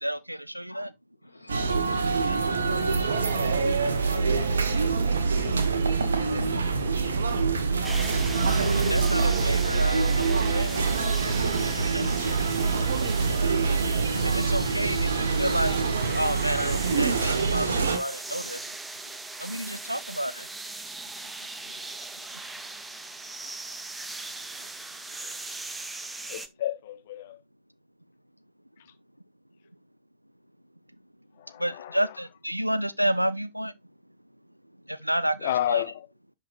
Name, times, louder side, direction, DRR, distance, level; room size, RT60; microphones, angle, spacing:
voice 1, 0.0-0.9 8.9-11.1 11.7-12.1 14.2-15.8 16.1-18.6 19.4-20.5 31.6-33.7 34.9-35.8, equal, 90° right, 0.4 m, -30 dB
voice 2, 1.2-5.5, left 2 dB, 85° left, 1.3 m, -51 dB
sound 1, 1.5-18.0, right 4 dB, 70° right, 1.0 m, -25 dB
sound 2, 7.8-26.5, right 2 dB, 10° right, 0.6 m, -39 dB
voice 3, 26.3-27.4 31.4-32.1 35.4-36.1, left 12 dB, 55° left, 0.9 m, -31 dB
10.5 x 3.8 x 2.4 m
figure-of-eight pair, 90°, 0 cm